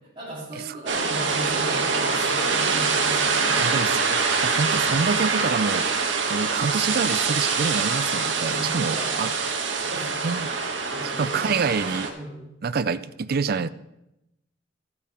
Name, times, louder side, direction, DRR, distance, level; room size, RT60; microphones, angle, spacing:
voice 1, 0.2-3.8 8.5-9.2 9.8-10.2 10.9-11.9 12.1-12.5, right 1 dB, 25° right, 4.3 m, -36 dB
sound 1, 0.9-12.1, right 4 dB, 80° right, 1.3 m, -24 dB
voice 2, 3.6-5.9 6.3-9.3 10.2-10.5 11.0-12.1 12.6-13.7, right 5 dB, 55° right, 0.5 m, -27 dB
12.0 x 8.6 x 4.3 m
head